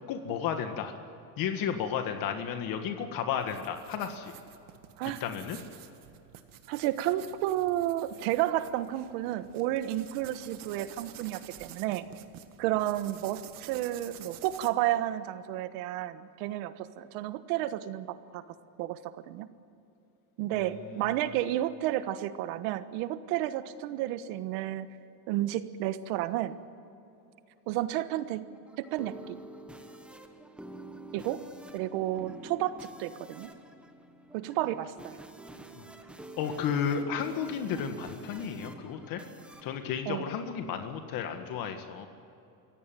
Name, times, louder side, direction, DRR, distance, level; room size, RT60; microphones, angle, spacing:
voice 1, 0.1-0.9 1.4-4.3 5.2-5.6 20.5-21.2 35.8-35.9 36.4-39.2 39.6-42.1, left 7 dB, 55° left, 6 dB, 1.8 m, -33 dB
sound 1, 3.4-14.7, right 11 dB, 50° right, 1.7 m, -50 dB
voice 2, 6.7-12.1 12.6-18.4 18.8-19.5 20.4-24.9 25.3-26.6 27.7-28.5 28.8-29.4 31.1-31.4 31.7-33.5 34.3-35.2 40.1-40.2, right 13 dB, 75° right, 12 dB, 1.4 m, -31 dB
sound 2, 28.5-41.0, right 1 dB, 5° right, 1.3 m, -48 dB
25.5 x 16.5 x 9.2 m, 2.8 s
cardioid pair, 150°, 42 cm